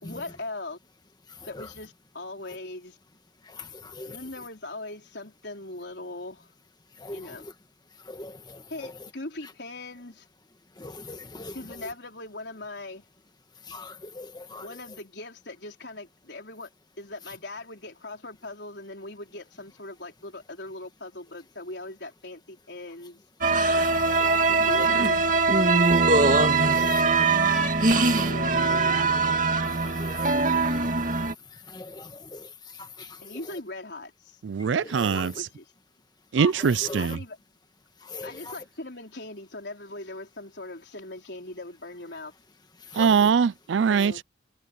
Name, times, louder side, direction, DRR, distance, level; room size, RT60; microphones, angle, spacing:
voice 1, 0.0-0.8 1.5-3.0 4.1-6.5 7.1-7.5 8.7-10.3 11.5-13.0 14.6-16.7 17.0-23.2 24.5-26.2 26.6-27.3 28.0-29.1 33.2-34.4 35.0-35.7 37.0-37.4 38.2-42.3 43.9-44.2, left 2 dB, 70° left, 4.3 m, -40 dB
voice 2, 3.5-4.2 7.0-7.5 8.1-8.6 10.8-11.5 13.7-14.6 24.1-24.5 26.9-27.0 27.8-28.3 29.7-30.8 31.7-32.5 32.8-33.2 34.7-35.3 36.4-36.5 36.8-37.0 38.0-38.5 42.9-43.3, left 3 dB, 25° left, 1.6 m, -40 dB
sound 1, 23.4-31.3, right 3 dB, 45° right, 2.3 m, -22 dB
voice 3, 34.4-35.3 36.3-37.2 43.0-44.1, right 6 dB, 90° right, 0.4 m, -22 dB
head